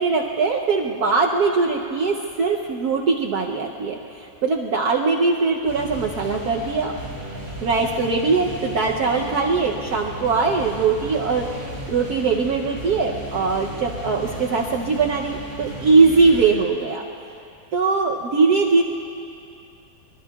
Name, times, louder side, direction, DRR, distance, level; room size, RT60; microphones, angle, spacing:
voice 1, 0.0-6.9 7.6-17.0 17.7-18.8, right 4 dB, 65° right, 0 dB, 1.2 m, -21 dB
sound 1, 5.7-16.5, equal, 30° left, 5.5 m, -35 dB
25.0 x 23.0 x 2.3 m, 2.6 s
omnidirectional pair, 2.1 m